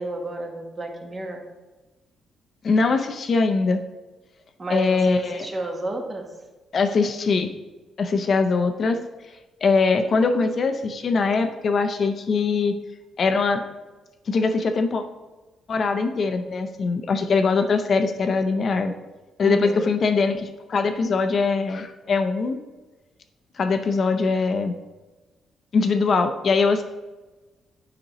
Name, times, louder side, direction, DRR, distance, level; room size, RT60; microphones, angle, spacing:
voice 1, 0.0-1.4 4.6-6.3 19.4-19.9, right 2 dB, 25° right, 2 dB, 1.0 m, -31 dB
voice 2, 2.6-3.8 4.7-5.5 6.7-7.5 8.0-9.0 9.6-12.7 13.2-13.6 14.3-15.0 15.7-18.9 19.4-22.6 23.6-24.7 25.7-26.8, left 4 dB, 45° left, 7 dB, 0.5 m, -22 dB
8.7 x 5.1 x 2.9 m, 1.2 s
cardioid pair, 125°, 0 cm